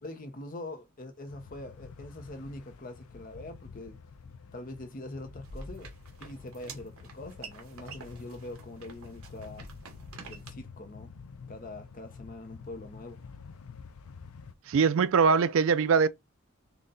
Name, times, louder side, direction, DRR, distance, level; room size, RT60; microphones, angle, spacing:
voice 1, 0.0-4.0 4.5-5.9 6.2-9.7 10.2-11.2 11.5-13.2, left 2 dB, 40° left, 0.6 m, -43 dB
sound 1, 1.3-14.5, left 5 dB, 75° left, 0.4 m, -49 dB
sound 2, 5.4-10.5, right 3 dB, 75° right, 1.2 m, -48 dB
voice 2, 14.7-16.1, right 5 dB, 60° right, 0.3 m, -22 dB
3.9 x 2.2 x 3.7 m
head